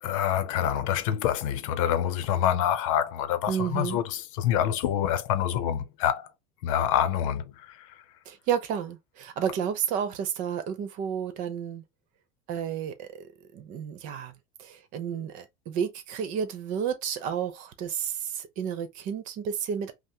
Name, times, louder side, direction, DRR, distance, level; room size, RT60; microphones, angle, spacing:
voice 1, 0.0-6.3 6.6-8.0, left 10 dB, 85° left, 0.6 m, -26 dB
voice 2, 3.5-4.0 8.3-11.8 12.5-14.3 14.6-19.9, right 8 dB, 55° right, 0.9 m, -31 dB
5.5 x 2.1 x 2.9 m
cardioid pair, 150°, 16 cm